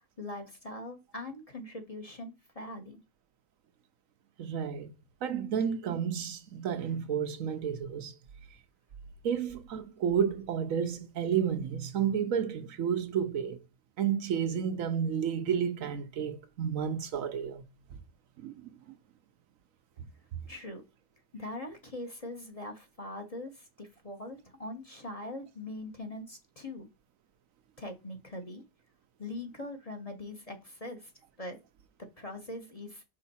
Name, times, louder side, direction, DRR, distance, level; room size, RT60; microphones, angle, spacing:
voice 1, 0.2-3.0 20.5-20.8 21.3-26.9 27.8-28.6 29.2-31.1 31.4-31.6 32.0-33.0, left 2 dB, 30° left, 1.1 m, -42 dB
voice 2, 4.4-4.9 5.2-8.1 9.2-13.6 14.0-17.6 18.4-19.0, right 8 dB, 70° right, 1.0 m, -31 dB
5.4 x 5.0 x 4.2 m
omnidirectional pair, 1.5 m